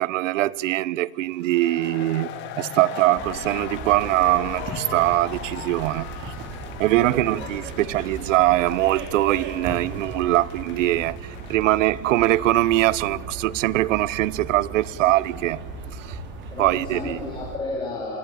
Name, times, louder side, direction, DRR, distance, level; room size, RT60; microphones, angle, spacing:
voice 1, 0.0-2.3 2.6-6.1 6.8-15.6 16.0-16.2 16.6-17.2, right 16 dB, 75° right, 0.8 m, -22 dB
sound 1, 1.3-13.0, left 9 dB, 30° left, 1.9 m, -40 dB
sound 2, 2.2-9.5, left 6 dB, 55° left, 5.2 m, -44 dB
sound 3, 3.1-17.6, right 3 dB, 30° right, 3.7 m, -37 dB
voice 2, 7.0-7.4 16.5-18.2, left 3 dB, 15° left, 3.8 m, -32 dB
27.5 x 17.0 x 8.9 m
supercardioid pair, 170°, 39 cm